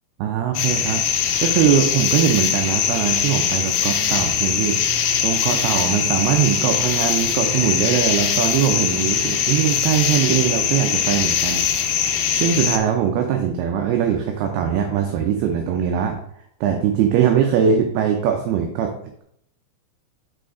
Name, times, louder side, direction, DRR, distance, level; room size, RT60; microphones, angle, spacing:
voice 1, 0.2-1.0 1.4-4.9 5.2-11.6 12.3-16.2 16.6-18.9, right 8 dB, 80° right, 3 dB, 2.4 m, -21 dB
sound 1, 0.5-12.8, left 8 dB, 80° left, 2.3 m, -21 dB
6.3 x 5.5 x 3.7 m, 0.69 s
omnidirectional pair, 5.1 m